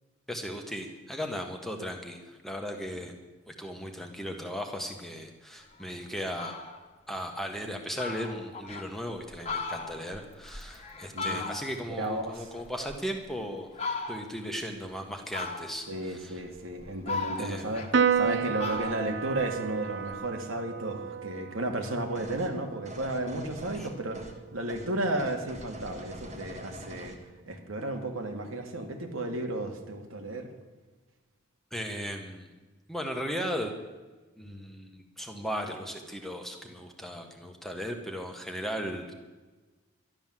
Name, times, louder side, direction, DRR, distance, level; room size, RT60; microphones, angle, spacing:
voice 1, 0.3-3.1 3.5-6.5 7.1-13.7 14.1-16.4 17.4-17.7 23.7-23.9 31.7-32.5 32.9-33.7 34.4-39.1, equal, ahead, 3 dB, 1.3 m, -36 dB
Fowl, 5.7-5.8 6.2-6.8 7.3-7.4 7.7-7.8 8.0-8.9 9.3-11.9 12.3-13.3 13.7-14.4 15.3-16.0 16.5-18.3 18.6-20.2, left 4 dB, 30° left, 1.4 m, -37 dB
voice 2, 11.1-11.4 12.0-12.5 15.9-24.2 24.5-27.2 27.5-30.5, right 1 dB, 80° right, 3 dB, 2.1 m, -33 dB
Piano, 17.9-24.6, right 7 dB, 55° right, 0.6 m, -32 dB
sound 1, 22.1-22.5 22.8-24.4 24.7-24.9 25.2-27.2, right 1 dB, 35° right, 1.7 m, -44 dB
12.0 x 12.0 x 7.6 m, 1.3 s
head